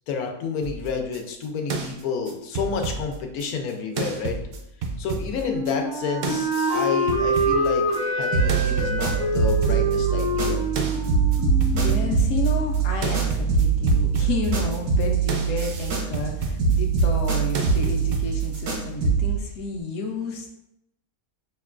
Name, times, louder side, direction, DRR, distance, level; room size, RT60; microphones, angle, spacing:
voice 1, 0.1-4.4 5.0-10.6, left 5 dB, 90° left, 3 dB, 1.1 m, -30 dB
sound 1, 0.6-3.7 4.0-6.0 6.2-8.2 8.5-18.6, right 5 dB, 75° right, 0.5 m, -29 dB
Wind instrument woodwind instrument, 5.3-12.2, equal, 10° right, 0.4 m, -26 dB
sound 2, 8.3-10.8 11.1-16.3 16.6-19.4, right 6 dB, 90° right, 1.4 m, -24 dB
voice 2, 11.7-20.5, left 3 dB, 70° left, 1 dB, 0.9 m, -30 dB
5.8 x 2.2 x 2.4 m, 0.83 s
omnidirectional pair, 1.5 m